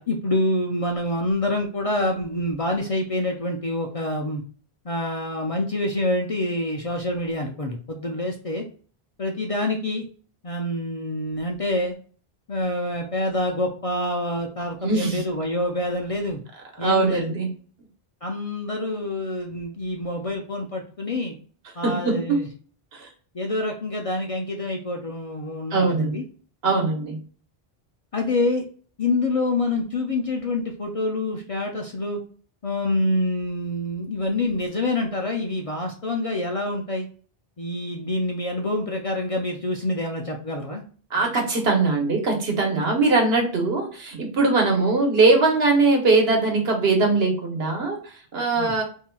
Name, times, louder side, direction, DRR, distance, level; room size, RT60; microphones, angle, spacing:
voice 1, 0.0-4.4 4.8-8.6 9.2-10.0 10.4-12.0 12.5-16.4 16.8-17.3 18.2-21.4 21.8-22.5 23.3-26.2 28.1-28.6 29.0-32.2 32.6-37.1 37.6-40.8 48.6-48.7, left 1 dB, 50° left, 2 dB, 0.4 m, -26 dB
voice 2, 14.8-15.2 16.8-17.5 21.8-22.4 22.9-23.1 25.7-26.2 26.6-27.2 41.1-48.8, right 3 dB, 75° right, 2 dB, 1.2 m, -21 dB
4.3 x 2.7 x 2.2 m, 0.42 s
omnidirectional pair, 1.1 m